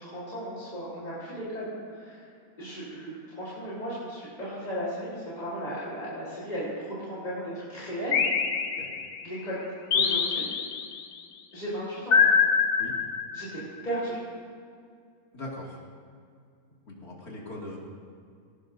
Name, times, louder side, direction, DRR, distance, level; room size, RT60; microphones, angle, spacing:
voice 1, 0.0-2.3 2.6-8.3 9.2-9.6 9.9-10.4 11.5-12.3 13.3-14.2, equal, 30° left, -9 dB, 4.1 m, -35 dB
sound 1, 8.1-9.2 9.9-11.0 12.1-13.6, left 6 dB, 70° left, 1.4 m, -24 dB
voice 2, 15.3-15.8 16.9-17.8, left 1 dB, 85° left, -4 dB, 3.0 m, -40 dB
19.0 x 18.0 x 2.7 m, 2.2 s
omnidirectional pair, 1.5 m